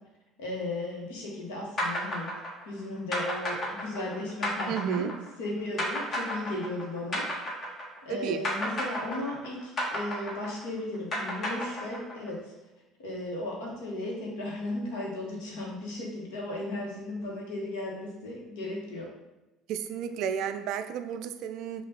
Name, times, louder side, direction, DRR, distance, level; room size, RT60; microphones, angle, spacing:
voice 1, 0.4-2.3 2.6-5.1 5.4-7.3 8.0-12.5 13.0-19.1, left 2 dB, 65° left, -3 dB, 1.2 m, -35 dB
sound 1, 1.8-8.1 8.4-12.3, left 1 dB, 35° left, 1.3 m, -32 dB
voice 2, 4.7-5.2 8.1-8.4 19.7-21.8, right 8 dB, 55° right, 9 dB, 0.3 m, -32 dB
5.3 x 2.4 x 4.1 m, 0.99 s
figure-of-eight pair, 60°, 0 cm